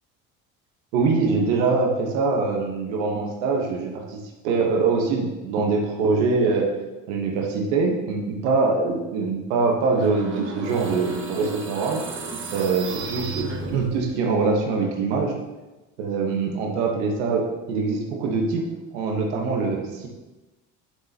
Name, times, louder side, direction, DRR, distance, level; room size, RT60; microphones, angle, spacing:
voice 1, 0.9-4.2 4.4-6.7 7.1-12.0 12.5-15.3 16.0-18.6 18.9-20.1, right 4 dB, 85° right, 0 dB, 1.2 m, -23 dB
sound 1, 9.9-14.2, right 3 dB, 35° right, 1.2 m, -34 dB
11.5 x 4.0 x 2.9 m, 1.1 s
supercardioid pair, 85°, 35 cm